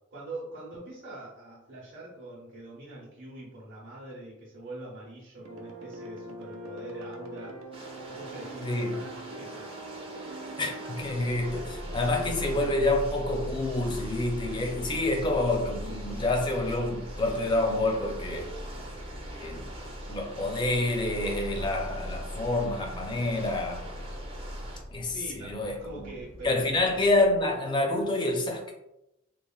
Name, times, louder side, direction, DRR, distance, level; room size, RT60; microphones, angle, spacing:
voice 1, 0.1-7.6 8.1-10.0 25.1-26.7, right 2 dB, 60° right, 0.8 m, -43 dB
sound 1, 5.4-12.8, equal, 85° right, 0.5 m, -42 dB
sound 2, 7.7-24.8, right 1 dB, 30° right, 0.5 m, -45 dB
voice 2, 8.6-9.0 10.6-18.5 19.4-19.7 20.1-23.9 24.9-26.1 26.4-28.7, left 2 dB, 25° left, 0.4 m, -28 dB
sound 3, 10.9-27.5, equal, 75° left, 0.8 m, -40 dB
3.1 x 2.4 x 2.3 m
head